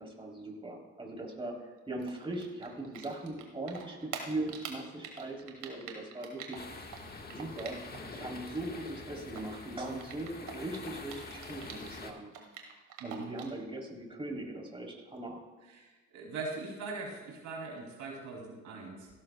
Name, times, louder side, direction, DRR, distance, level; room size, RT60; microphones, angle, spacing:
voice 1, 0.0-6.7 7.3-7.8 8.0-12.3 13.0-15.4, right 2 dB, 20° right, -1 dB, 3.3 m, -40 dB
Typing, 2.0-8.2 8.4-12.0 12.3-13.6, right 8 dB, 90° right, 1.8 m, -45 dB
sound 1, 6.6-12.1, left 3 dB, 30° left, 1.5 m, -46 dB
voice 2, 13.0-13.3 15.7-19.1, right 3 dB, 75° right, -1 dB, 2.8 m, -41 dB
17.0 x 13.0 x 2.3 m, 1.3 s
supercardioid pair, 75°, 30 cm